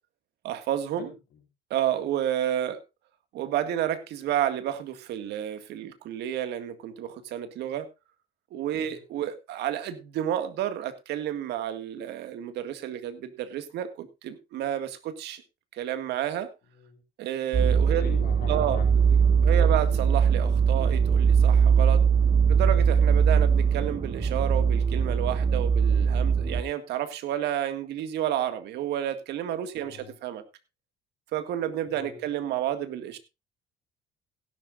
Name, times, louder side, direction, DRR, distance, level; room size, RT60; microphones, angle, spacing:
voice 1, 0.4-1.1 1.7-2.8 3.3-7.9 8.5-15.4 15.8-16.5 17.2-18.1 18.5-18.8 19.4-22.0 22.5-30.4 31.3-33.2, right 11 dB, 70° right, 10 dB, 2.0 m, -30 dB
sound 1, 17.5-26.6, right 6 dB, 30° right, 1.2 m, -21 dB
voice 2, 17.9-19.8 29.8-30.2 31.9-32.3, left 6 dB, 55° left, 3 dB, 4.2 m, -43 dB
17.0 x 11.5 x 2.5 m, 0.25 s
cardioid pair, 130°, 18 cm